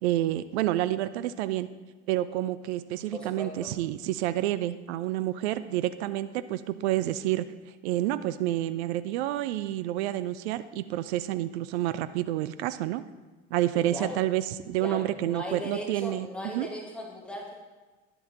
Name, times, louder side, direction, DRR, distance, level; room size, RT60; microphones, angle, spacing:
voice 1, 0.0-1.7 2.1-7.4 7.8-13.0 13.5-16.3 16.5-16.7, right 14 dB, 60° right, 14 dB, 0.5 m, -29 dB
voice 2, 3.1-3.7 13.7-14.2 14.8-17.5, equal, 5° left, -1 dB, 1.7 m, -38 dB
10.5 x 7.8 x 3.9 m, 1.3 s
figure-of-eight pair, 65°, 37 cm